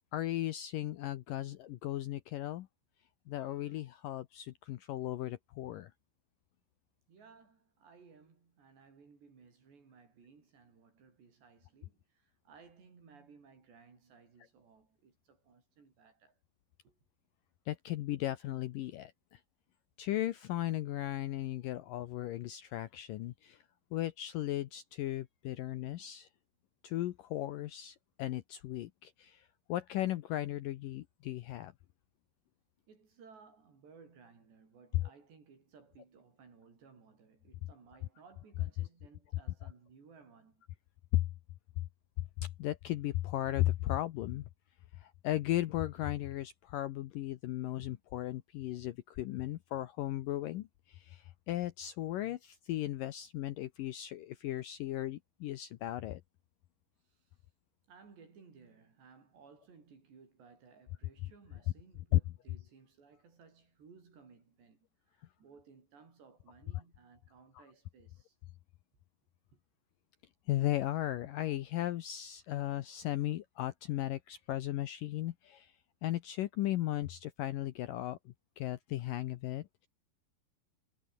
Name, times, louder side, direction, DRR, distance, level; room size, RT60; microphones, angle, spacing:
voice 1, 0.1-2.7 3.3-5.9 17.7-19.4 20.0-23.6 23.9-26.3 26.8-31.7 41.1-41.3 42.4-44.4 45.0-56.2 62.1-62.2 70.5-75.7 76.0-79.9, left 14 dB, 75° left, 2.0 m, -36 dB
voice 2, 3.4-3.8 7.1-16.4 16.8-17.0 32.9-40.6 57.0-57.3 57.9-68.4 69.5-69.6, right 5 dB, 80° right, 8.5 m, -60 dB
omnidirectional pair, 4.9 m